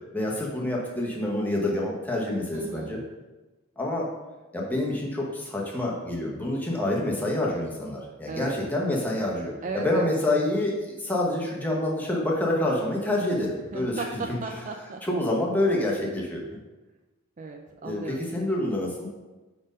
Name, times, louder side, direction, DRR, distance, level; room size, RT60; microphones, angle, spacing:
voice 1, 0.1-3.0 3.8-4.1 4.5-14.4 15.0-16.4 17.8-19.1, left 1 dB, 10° left, -3 dB, 0.9 m, -27 dB
voice 2, 2.5-3.0 8.3-8.6 9.6-10.2 13.7-15.0 17.4-18.2, right 3 dB, 35° right, 3 dB, 0.4 m, -35 dB
5.1 x 4.4 x 5.2 m, 1.2 s
head